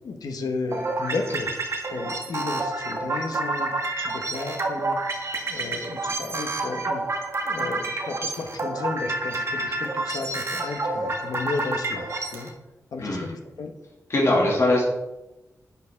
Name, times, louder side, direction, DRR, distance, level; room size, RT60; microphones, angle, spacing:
voice 1, 0.0-1.5 1.9-3.7 4.0-5.0 5.4-7.0 7.4-12.5 12.9-13.7 14.2-14.4, left 3 dB, 85° left, 4 dB, 1.2 m, -33 dB
sound 1, 0.7-12.5, right 2 dB, 45° right, 1.5 m, -29 dB
voice 2, 14.1-14.8, left 1 dB, 45° left, -3 dB, 2.4 m, -21 dB
11.5 x 6.7 x 3.7 m, 0.94 s
wide cardioid pair, 155°, 6 cm